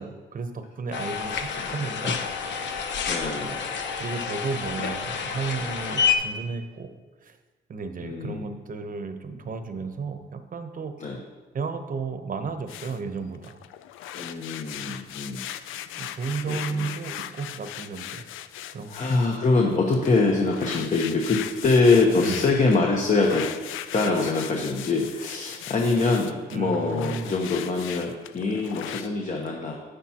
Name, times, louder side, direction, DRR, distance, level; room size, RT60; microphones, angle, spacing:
voice 1, 0.0-2.1 2.4-2.9 3.4-3.7 4.0-6.9 7.2-7.4 7.7-11.2 11.5-13.6 14.8-15.0 16.0-18.2 18.7-19.0 22.2-22.5 26.5-27.4, right 4 dB, 45° right, 8 dB, 0.9 m, -33 dB
sound 1, 0.9-6.2, left 6 dB, 65° left, 0.9 m, -29 dB
voice 2, 3.1-3.5 8.0-8.6 11.0-11.2 14.1-15.5 16.5-16.9 18.9-23.5 23.9-29.7, left 3 dB, 40° left, 1 dB, 1.1 m, -24 dB
sound 2, 12.7-13.0 13.3-19.5 19.9-29.1, left 11 dB, 85° left, 0.4 m, -38 dB
10.0 x 8.3 x 2.9 m, 1.3 s
cardioid pair, 90°, 20 cm